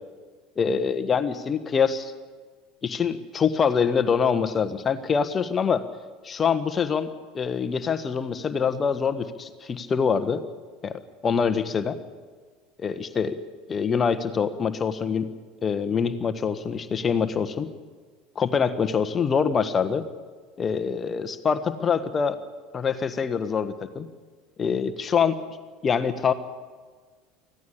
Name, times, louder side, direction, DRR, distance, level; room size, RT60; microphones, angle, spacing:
voice 1, 0.6-2.1 2.8-5.8 6.2-7.1 7.3-10.4 10.8-12.0 12.8-13.4 13.7-15.3 15.6-17.7 18.3-20.0 20.6-22.4 22.7-24.1 24.6-25.4 25.8-26.3, left 6 dB, 30° left, 11 dB, 1.4 m, -25 dB
25.0 x 16.0 x 8.6 m, 1.5 s
figure-of-eight pair, 70°, 0 cm